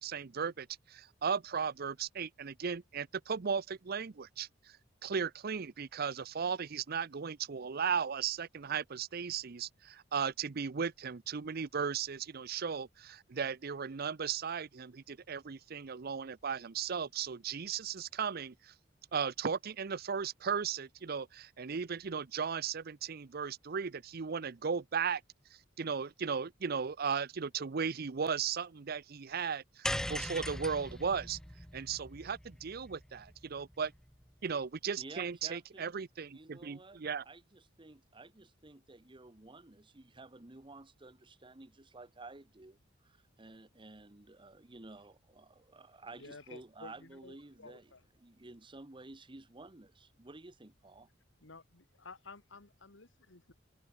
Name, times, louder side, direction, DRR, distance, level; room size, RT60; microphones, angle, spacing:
voice 1, 0.0-4.8 5.0-18.7 19.1-25.2 25.5-31.4 31.7-33.9 34.4-37.2, right 6 dB, 50° right, 0.6 m, -36 dB
sound 1, 29.8-34.2, left 1 dB, 5° left, 0.5 m, -40 dB
voice 2, 34.9-36.0 36.3-51.1, right 2 dB, 25° right, 1.1 m, -53 dB
voice 3, 46.1-48.0 51.4-53.5, left 3 dB, 70° left, 2.2 m, -53 dB
head